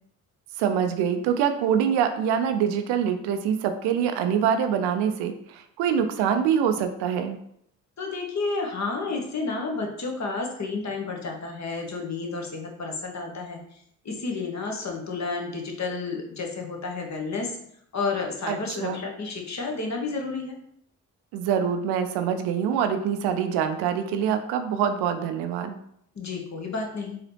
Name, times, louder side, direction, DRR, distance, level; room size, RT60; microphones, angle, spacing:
voice 1, 0.6-7.4 18.5-19.0 21.3-25.8, right 8 dB, 90° right, 7 dB, 0.5 m, -25 dB
voice 2, 8.0-13.8 14.0-17.6 17.9-20.6 26.1-27.2, left 4 dB, 45° left, 1 dB, 1.0 m, -31 dB
3.8 x 2.8 x 3.3 m, 0.70 s
supercardioid pair, 50°, 39 cm